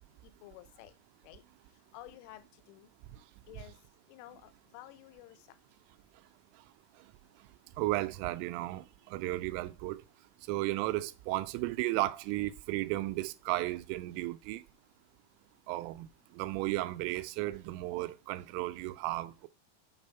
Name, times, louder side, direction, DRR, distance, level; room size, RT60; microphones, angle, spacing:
voice 1, 0.4-0.9 1.2-1.4 1.9-2.9 3.5-3.7 4.1-5.4, left 14 dB, 85° left, 2.9 m, -51 dB
voice 2, 7.8-10.0 10.5-14.6 15.7-16.1 16.3-19.5, right 17 dB, 90° right, 3.1 m, -34 dB
8.1 x 3.4 x 5.6 m
omnidirectional pair, 5.6 m